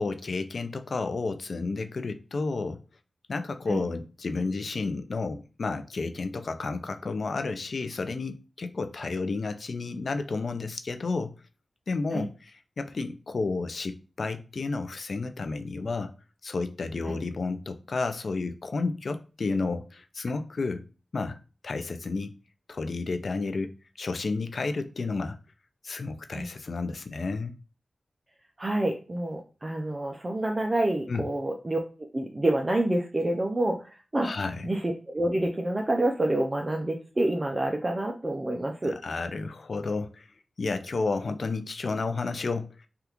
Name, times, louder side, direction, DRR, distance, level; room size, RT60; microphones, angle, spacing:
voice 1, 0.0-2.8 3.3-11.3 11.9-16.1 16.4-20.8 21.1-21.4 21.6-22.3 22.7-23.7 24.0-25.4 25.8-27.5 31.1-31.2 34.2-34.7 38.8-40.3 40.6-42.9, left 3 dB, 70° left, 0.4 m, -31 dB
voice 2, 28.6-31.8 32.1-34.3 34.6-39.0, right 1 dB, 30° right, 0.4 m, -28 dB
3.3 x 2.4 x 2.9 m
wide cardioid pair, 70°, 0 cm